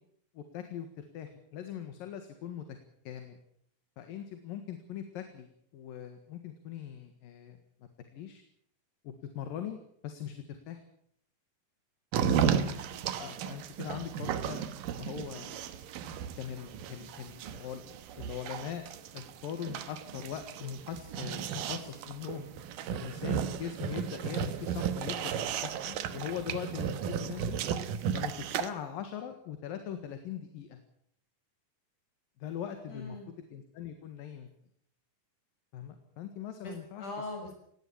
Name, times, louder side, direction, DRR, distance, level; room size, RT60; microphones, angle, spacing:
voice 1, 0.3-2.8 3.0-3.4 4.0-7.6 8.1-8.4 9.0-10.8 12.1-12.4 13.2-14.7 15.0-15.7 16.4-17.8 18.2-18.8 19.1-22.5 22.9-27.6 28.1-30.8 32.4-34.5 35.7-37.3, left 9 dB, 75° left, 7 dB, 3.4 m, -41 dB
sound 1, 12.1-28.7, right 8 dB, 75° right, 2.8 m, -34 dB
voice 2, 12.3-13.0 32.9-33.3 36.6-36.7 37.0-37.5, left 2 dB, 60° left, 2 dB, 8.2 m, -42 dB
18.5 x 17.5 x 8.7 m, 0.69 s
omnidirectional pair, 4.1 m